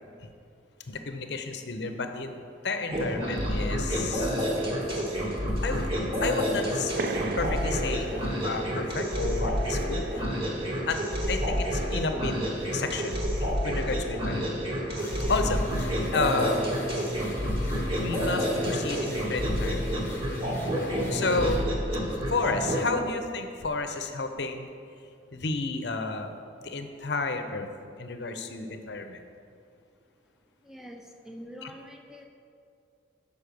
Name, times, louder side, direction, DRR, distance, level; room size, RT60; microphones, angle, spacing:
voice 1, 0.8-2.4 2.6-4.5 5.6-5.9 6.2-6.9 7.4-10.3 10.9-14.6 15.3-16.7 18.0-20.0 21.1-21.7 22.3-24.7 25.0-26.3 26.6-27.7 28.0-29.2 31.6-31.7, left 3 dB, 60° left, 7 dB, 0.6 m, -31 dB
sound 1, 2.9-22.8, equal, 30° right, 1.1 m, -29 dB
sound 2, 6.9-12.2, right 3 dB, 50° right, 0.4 m, -40 dB
sound 3, 14.9-21.6, left 1 dB, 15° left, 1.1 m, -39 dB
voice 2, 30.6-32.3, equal, 5° right, 2 dB, 0.6 m, -45 dB
6.3 x 5.4 x 6.8 m, 2.5 s
head